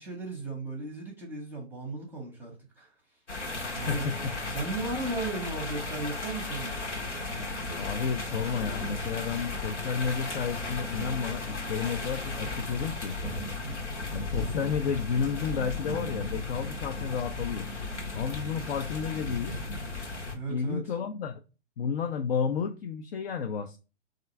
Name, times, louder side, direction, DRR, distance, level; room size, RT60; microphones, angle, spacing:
voice 1, 0.0-2.9 3.7-4.1 4.5-6.9 20.3-20.9, right 2 dB, 5° right, 0.7 m, -36 dB
sound 1, 3.3-20.3, left 3 dB, 90° left, 1.1 m, -35 dB
voice 2, 3.9-4.3 7.8-13.1 14.1-17.7 18.1-19.6 20.5-21.3 21.8-23.8, left 6 dB, 60° left, 0.5 m, -31 dB
3.6 x 2.5 x 4.1 m
figure-of-eight pair, 120°, 34 cm